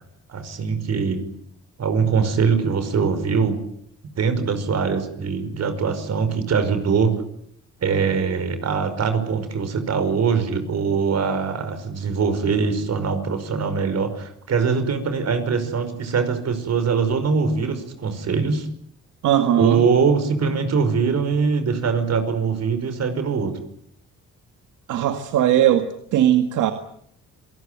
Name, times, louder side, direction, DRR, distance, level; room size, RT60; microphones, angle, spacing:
voice 1, 0.3-1.2 1.8-3.6 4.2-7.2 7.8-18.7 19.6-23.6, right 5 dB, 60° right, 10 dB, 5.4 m, -22 dB
voice 2, 19.2-19.8 24.9-26.7, right 11 dB, 80° right, 7 dB, 2.0 m, -19 dB
27.5 x 18.5 x 9.4 m, 0.70 s
cardioid pair, 90°, 30 cm